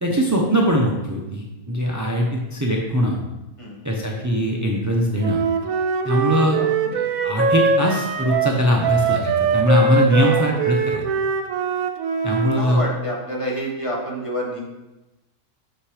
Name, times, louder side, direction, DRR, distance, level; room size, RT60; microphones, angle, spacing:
voice 1, 0.0-3.2 3.8-5.4 6.0-11.1 12.2-12.8, equal, 25° right, -1 dB, 0.3 m, -21 dB
voice 2, 3.6-3.9 6.3-6.7 10.1-10.4 12.6-14.6, equal, 20° left, -3 dB, 1.5 m, -28 dB
Wind instrument woodwind instrument, 5.2-12.6, right 5 dB, 65° right, 1.1 m, -22 dB
6.6 x 5.9 x 5.0 m, 1.0 s
omnidirectional pair, 1.8 m